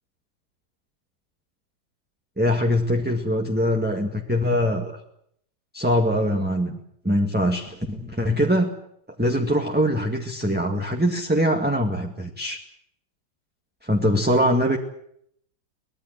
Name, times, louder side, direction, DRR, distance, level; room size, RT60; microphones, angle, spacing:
voice 1, 2.4-5.0 5.7-6.8 7.0-8.7 9.2-12.6 13.8-14.8, equal, 5° right, 2 dB, 1.8 m, -22 dB
24.0 x 19.5 x 7.9 m, 0.69 s
omnidirectional pair, 2.1 m